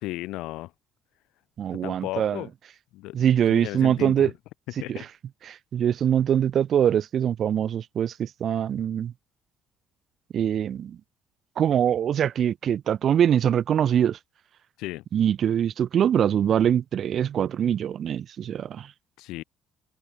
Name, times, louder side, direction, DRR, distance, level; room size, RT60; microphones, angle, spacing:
voice 1, 0.0-0.7 1.7-2.5 2.9-3.2 3.5-4.3 4.8-5.0 14.8-15.0 19.2-19.4, left 18 dB, 80° left, 3.4 m, -34 dB
voice 2, 1.6-2.4 3.1-4.3 4.9-5.0 5.5-9.1 10.3-11.0 11.6-14.2 15.1-18.9, right 9 dB, 40° right, 1.3 m, -23 dB
open air
cardioid pair, 175°, 0 cm